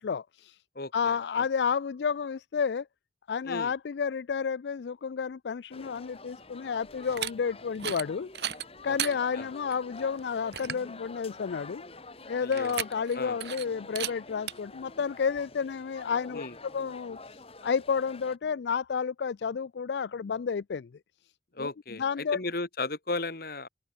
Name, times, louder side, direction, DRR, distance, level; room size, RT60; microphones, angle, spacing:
voice 1, 0.0-0.6 0.9-2.9 3.3-8.3 8.8-11.8 12.2-20.9 21.6-22.4, left 6 dB, 75° left, 0.4 m, -31 dB
voice 2, 0.8-1.5 3.4-3.7 8.8-9.0 9.4-9.5 12.4-12.8 13.1-13.4 16.3-16.6 21.5-23.7, left 2 dB, 55° left, 2.4 m, -35 dB
sound 1, 5.7-18.4, left 3 dB, 35° left, 2.8 m, -48 dB
sound 2, 7.0-7.3 7.7-8.1 8.3-9.1 9.7-9.8 10.2-10.3 10.5-10.9 12.5-13.1 13.4-13.6 13.9-14.1 14.5-14.6, right 10 dB, 70° right, 1.4 m, -34 dB
head